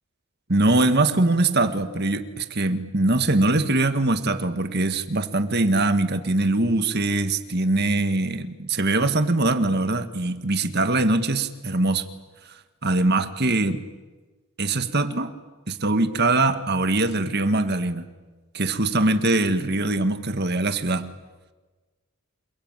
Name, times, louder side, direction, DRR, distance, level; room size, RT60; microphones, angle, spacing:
voice 1, 0.5-12.0 12.8-13.8 14.6-15.3 15.7-18.1 18.5-21.1, right 2 dB, 45° right, 9 dB, 1.7 m, -22 dB
28.5 x 22.0 x 9.1 m, 1.3 s
head